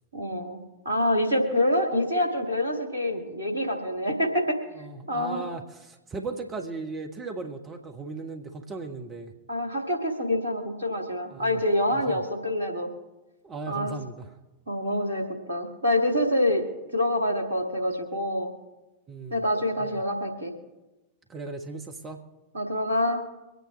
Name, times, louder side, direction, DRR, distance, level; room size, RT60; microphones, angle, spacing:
voice 1, 0.1-0.6 0.9-4.6 5.1-5.4 9.5-12.9 13.7-13.9 14.7-16.6 16.9-18.5 19.3-20.5 22.5-23.2, left 1 dB, 80° right, 2 dB, 2.1 m, -26 dB
voice 2, 4.7-9.3 10.9-11.6 11.9-12.2 13.4-14.4 19.1-19.4 19.8-20.0 21.3-22.2, right 3 dB, 25° right, 4 dB, 1.3 m, -37 dB
24.5 x 9.2 x 3.4 m, 1.1 s
figure-of-eight pair, 90°, 0 cm